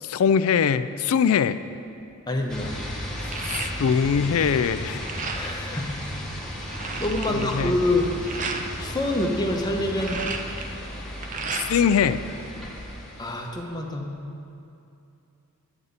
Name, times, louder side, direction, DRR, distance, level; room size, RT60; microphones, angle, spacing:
voice 1, 0.0-1.6 3.5-5.0 7.3-7.8 11.5-12.3, left 7 dB, 65° left, 13 dB, 0.3 m, -22 dB
sound 1, 1.7-2.0 2.4-4.2 4.5-5.7 6.2-6.3 6.4-8.7 9.7-12.0 12.3-13.2, right 4 dB, 35° right, 0.6 m, -34 dB
voice 2, 2.3-2.7 5.3-6.0 7.0-8.4 8.8-10.2 13.2-14.1, left 1 dB, 20° left, 1 dB, 0.9 m, -26 dB
sound 2, 2.5-13.6, equal, 5° left, 1.2 m, -35 dB
11.0 x 9.0 x 4.0 m, 2.7 s
head